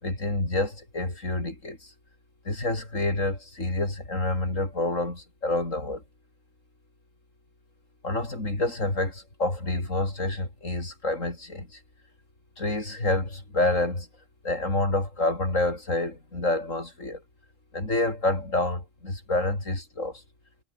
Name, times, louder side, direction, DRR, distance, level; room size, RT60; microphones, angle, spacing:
voice 1, 0.0-1.8 2.5-6.0 8.0-11.7 12.6-14.1 14.4-17.2 17.7-20.2, left 2 dB, 85° left, 6.2 m, -28 dB
omnidirectional pair, 1.3 m